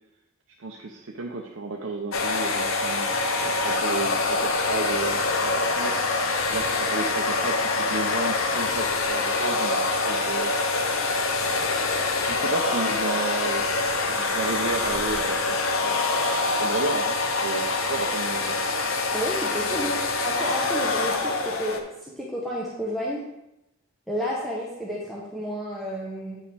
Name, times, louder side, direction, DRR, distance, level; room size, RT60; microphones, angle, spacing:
voice 1, 0.6-6.0 6.5-10.5 12.2-13.7 14.0-16.0 16.4-18.7 19.7-19.9, right 3 dB, 75° right, 0 dB, 0.7 m, -32 dB
sound 1, 2.1-21.8, left 3 dB, 75° left, 0.7 m, -25 dB
voice 2, 19.1-23.2 24.1-26.4, equal, ahead, -6 dB, 0.9 m, -31 dB
8.6 x 5.5 x 3.4 m, 0.89 s
head